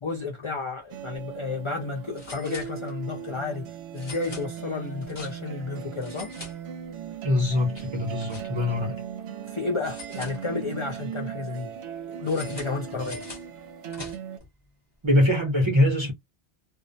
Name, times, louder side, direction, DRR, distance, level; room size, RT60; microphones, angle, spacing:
voice 1, 0.0-6.3 9.4-11.7 12.2-13.2, left 4 dB, 45° left, 0.4 m, -32 dB
sound 1, 0.9-14.4, right 8 dB, 75° right, 0.8 m, -38 dB
sound 2, 1.0-1.2 1.5-1.6 2.1-3.2 3.9-5.6 6.0-7.1 7.5-8.8 9.8-10.9 12.2-14.5, left 2 dB, 25° left, 0.8 m, -45 dB
voice 2, 7.2-9.0 15.0-16.1, left 1 dB, 30° right, 0.7 m, -23 dB
2.3 x 2.1 x 2.5 m
omnidirectional pair, 1.1 m